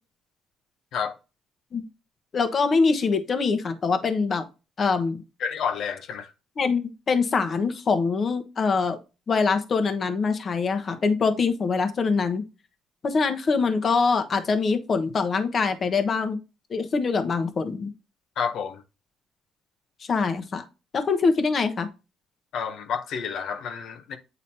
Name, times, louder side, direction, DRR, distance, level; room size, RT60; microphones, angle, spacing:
voice 1, 2.3-4.4 4.8-5.2 6.6-9.0 9.3-12.4 13.0-16.4 16.7-17.9 20.1-20.6 20.9-21.9, left 4 dB, 40° left, 1.0 m, -24 dB
voice 2, 5.4-6.3 18.4-18.8 22.5-24.2, left 7 dB, 65° left, 0.8 m, -30 dB
8.7 x 4.0 x 2.8 m
cardioid pair, 120°, 0 cm